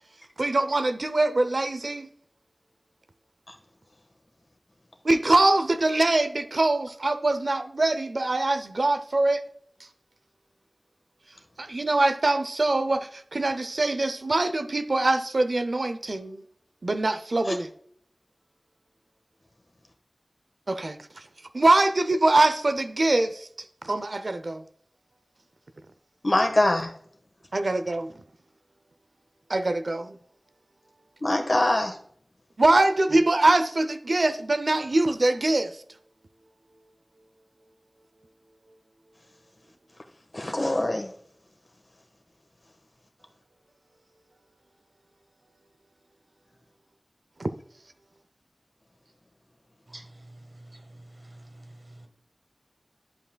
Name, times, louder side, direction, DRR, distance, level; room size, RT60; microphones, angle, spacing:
voice 1, 0.4-2.1 5.0-9.4 11.6-16.4 16.8-17.7 20.7-21.0 21.5-23.5 23.8-24.6 27.5-28.1 29.5-30.2 32.6-35.8 47.4-47.5, right 2 dB, 75° right, 0.5 m, -23 dB
voice 2, 26.2-26.9 31.2-32.0 40.3-41.1, left 1 dB, 50° left, 1.2 m, -23 dB
voice 3, 49.9-52.1, right 1 dB, 50° right, 1.4 m, -48 dB
11.0 x 5.6 x 2.2 m
wide cardioid pair, 55°, 0 cm